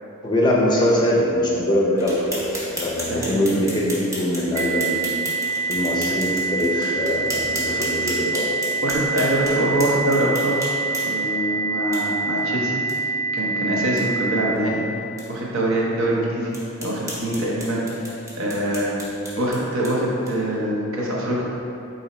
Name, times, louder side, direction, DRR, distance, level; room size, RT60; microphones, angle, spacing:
voice 1, 0.2-5.1 5.7-8.5, left 1 dB, 20° left, -4 dB, 0.5 m, -22 dB
sound 1, 2.0-11.3 11.9-12.0 12.4-12.5 12.9-13.0 13.3-13.4 13.8-14.0 14.6-14.7 15.2-15.3 15.8-15.9 16.5-20.6, equal, 15° right, 0.8 m, -35 dB
sound 2, 4.5-14.5, right 4 dB, 35° right, 0.4 m, -26 dB
voice 2, 8.8-10.7 11.0-12.8 13.3-14.8 15.3-16.6 16.8-17.8 18.4-19.0 19.4-21.5, right 1 dB, 65° right, -4 dB, 0.8 m, -23 dB
3.9 x 2.7 x 4.1 m, 2.8 s
head